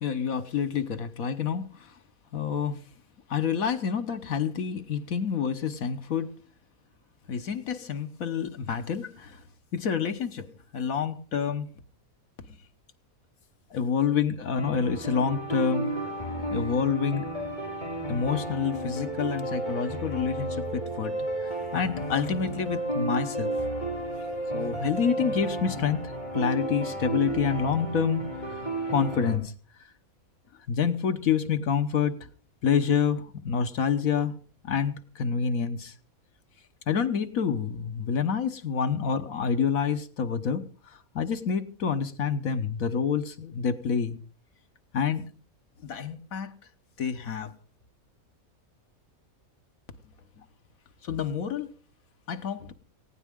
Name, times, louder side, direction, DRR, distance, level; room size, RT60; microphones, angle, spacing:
voice 1, 0.0-1.9 2.3-2.8 3.3-6.3 7.3-9.4 9.7-11.7 13.7-16.0 16.5-17.3 18.1-21.2 21.7-23.5 24.5-28.6 28.9-29.5 30.7-32.3 32.6-34.3 34.6-35.9 36.9-44.2 44.9-45.3 45.8-46.5 47.0-47.5 50.4-50.5 51.0-51.7 52.3-52.7, left 7 dB, 70° left, 1.6 m, -28 dB
sound 1, 14.6-29.4, right 1 dB, 30° left, 4.3 m, -32 dB
19.0 x 16.5 x 3.7 m
omnidirectional pair, 1.5 m